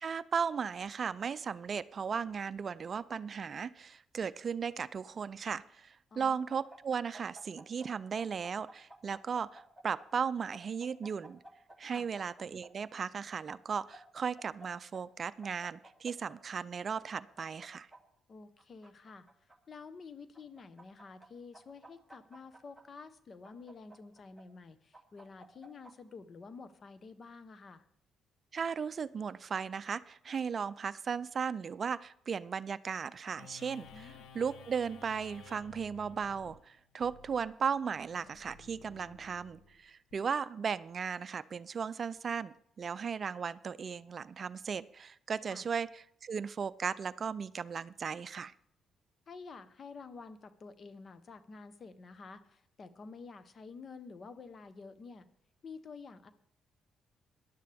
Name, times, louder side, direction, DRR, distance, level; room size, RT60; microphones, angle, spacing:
voice 1, 0.0-11.4 11.8-17.9 28.5-34.1 34.3-48.5, right 6 dB, 45° right, 16 dB, 0.4 m, -36 dB
voice 2, 6.1-6.4 11.9-12.1 18.3-27.9 33.9-34.3 45.5-45.6 49.3-55.3 55.6-56.3, left 4 dB, 45° left, 11 dB, 1.1 m, -50 dB
sound 1, 6.3-7.9 8.2-10.1 10.5-12.7 13.5-14.7 14.9-15.0 15.4-16.4 16.9-18.0 18.6-19.6 20.3-21.3 21.5-22.8 23.4-24.4 24.9-25.9, right 1 dB, 5° right, 2.3 m, -54 dB
sound 2, 33.4-40.1, left 4 dB, 80° left, 1.2 m, -55 dB
18.5 x 11.0 x 3.5 m, 0.69 s
cardioid pair, 90°, 0 cm